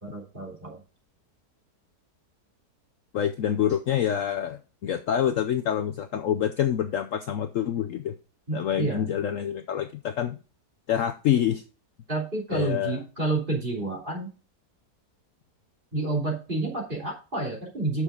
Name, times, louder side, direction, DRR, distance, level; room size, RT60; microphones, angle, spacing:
voice 1, 0.0-0.8 8.5-9.1 12.1-14.3 15.9-18.0, right 2 dB, 30° right, -2 dB, 3.2 m, -29 dB
voice 2, 3.1-8.1 8.5-10.4 10.9-11.6 12.5-13.0, left 10 dB, 65° left, 7 dB, 0.9 m, -26 dB
9.1 x 6.3 x 3.8 m, 0.34 s
omnidirectional pair, 1.7 m